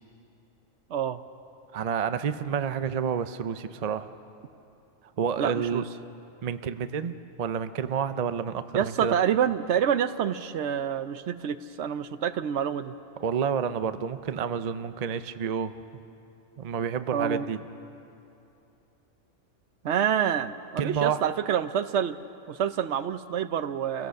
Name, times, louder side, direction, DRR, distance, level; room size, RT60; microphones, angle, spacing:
voice 1, 0.9-1.2 5.4-5.8 8.7-12.9 17.1-17.5 19.8-22.2 22.5-24.1, right 8 dB, 65° right, 12 dB, 0.9 m, -27 dB
voice 2, 1.7-4.1 5.2-5.8 6.4-9.2 13.2-15.7 16.6-17.6 20.8-21.2, right 7 dB, 50° right, 11 dB, 0.5 m, -29 dB
28.0 x 17.0 x 6.5 m, 2.8 s
omnidirectional pair, 1.4 m